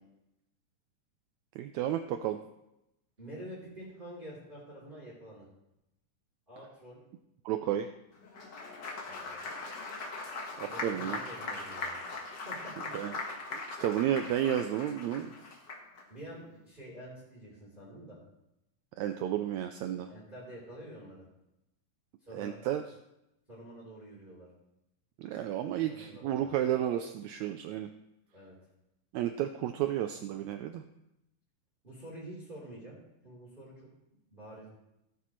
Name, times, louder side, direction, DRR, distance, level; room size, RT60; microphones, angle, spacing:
voice 1, 1.5-2.4 7.4-7.9 10.6-11.2 12.9-13.1 13.5-15.3 19.0-20.1 22.3-22.8 25.2-27.9 29.1-30.8, right 11 dB, 90° right, 8 dB, 1.6 m, -32 dB
voice 2, 3.2-5.5 6.5-7.0 9.1-9.4 10.6-12.0 12.4-12.9 16.1-18.2 20.1-21.2 22.2-22.6 23.5-24.5 25.6-26.6 28.3-28.5 31.8-33.0 33.2-33.9 34.3-34.7, right 1 dB, 15° right, -6 dB, 3.3 m, -47 dB
Applause, 8.2-16.0, left 3 dB, 50° left, 1.4 m, -40 dB
17.0 x 8.3 x 3.1 m, 0.88 s
omnidirectional pair, 3.8 m